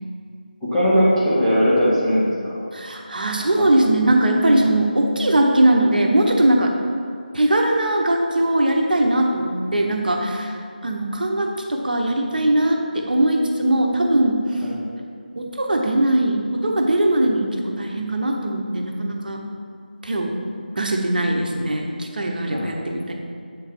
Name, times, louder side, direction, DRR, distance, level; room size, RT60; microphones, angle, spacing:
voice 1, 0.7-2.6 3.6-3.7 14.6-14.8 22.5-22.7, equal, ahead, -14 dB, 0.5 m, -19 dB
voice 2, 2.7-6.7 7.3-10.5 10.8-14.4 15.4-19.4 20.0-20.3 20.7-23.1, right 1 dB, 60° right, 1 dB, 0.9 m, -20 dB
7.7 x 3.3 x 5.1 m, 2.3 s
figure-of-eight pair, 175°, 5 cm